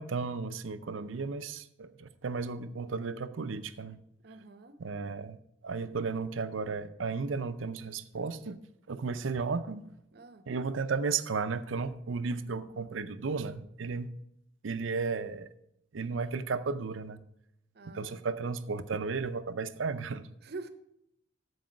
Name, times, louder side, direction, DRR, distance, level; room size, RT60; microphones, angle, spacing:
voice 1, 0.0-4.0 4.8-5.4 5.6-8.6 8.9-9.9 10.5-14.2 14.6-15.5 15.9-17.2 17.9-20.2, right 4 dB, 90° right, 12 dB, 0.6 m, -34 dB
voice 2, 4.2-4.8 10.1-10.4 17.7-18.2 20.4-20.7, right 3 dB, 55° right, 11 dB, 0.8 m, -45 dB
13.5 x 4.8 x 5.2 m, 0.78 s
head